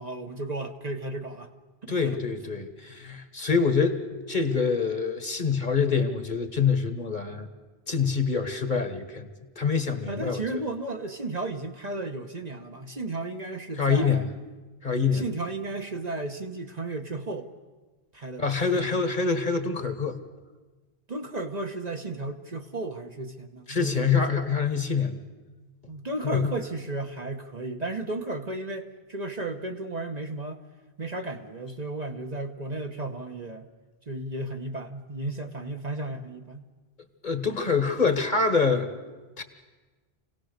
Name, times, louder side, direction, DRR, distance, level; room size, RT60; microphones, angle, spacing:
voice 1, 0.0-1.5 2.0-2.2 10.1-14.3 15.1-17.5 18.1-18.4 18.7-18.8 21.1-24.6 25.9-30.6 31.0-33.7 34.1-36.7, right 2 dB, 40° right, 4 dB, 1.2 m, -34 dB
voice 2, 1.9-7.5 7.9-9.3 9.5-10.6 13.8-14.3 14.8-15.2 18.4-20.2 23.7-25.2 26.2-26.5 37.2-38.9 39.4-39.5, left 5 dB, 50° left, 8 dB, 1.6 m, -25 dB
27.0 x 18.0 x 6.6 m, 1.3 s
omnidirectional pair, 1.1 m